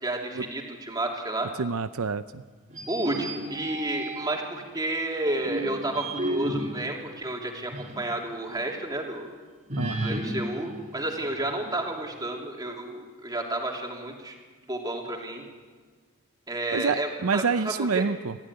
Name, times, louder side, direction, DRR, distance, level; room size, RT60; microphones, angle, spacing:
voice 1, 0.0-1.5 2.9-9.3 10.0-14.3 14.7-15.4 16.5-18.1, right 1 dB, 20° right, 0 dB, 3.3 m, -31 dB
voice 2, 1.6-2.4 9.8-10.1 16.7-18.4, right 5 dB, 75° right, 11 dB, 0.6 m, -27 dB
sound 1, 2.7-4.5 5.1-8.1 8.5-8.6 9.7-11.8, right 1 dB, 35° right, 3.0 m, -33 dB
25.0 x 15.0 x 9.8 m, 1.5 s
head